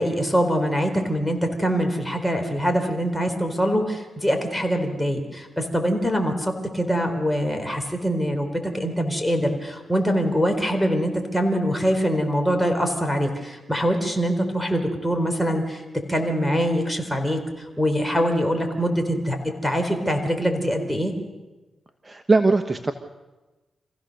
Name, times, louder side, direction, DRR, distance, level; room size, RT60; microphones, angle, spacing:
voice 1, 0.0-15.8 16.1-17.4 17.8-19.4 19.6-21.1, equal, 10° left, 4 dB, 4.2 m, -23 dB
voice 2, 22.0-22.9, right 3 dB, 25° right, 7 dB, 1.3 m, -20 dB
27.0 x 15.5 x 6.7 m, 1.1 s
cardioid pair, 65°, 0 cm